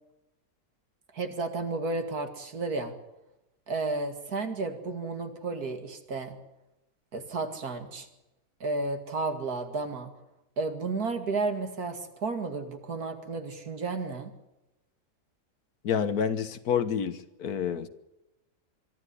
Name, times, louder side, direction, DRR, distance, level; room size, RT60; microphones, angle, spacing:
voice 1, 1.1-2.9 3.7-6.4 7.1-8.1 8.6-10.1 10.6-14.3, right 3 dB, 80° right, 2.6 m, -32 dB
voice 2, 15.8-17.9, left 7 dB, 80° left, 1.7 m, -28 dB
23.5 x 13.5 x 9.8 m
omnidirectional pair, 1.6 m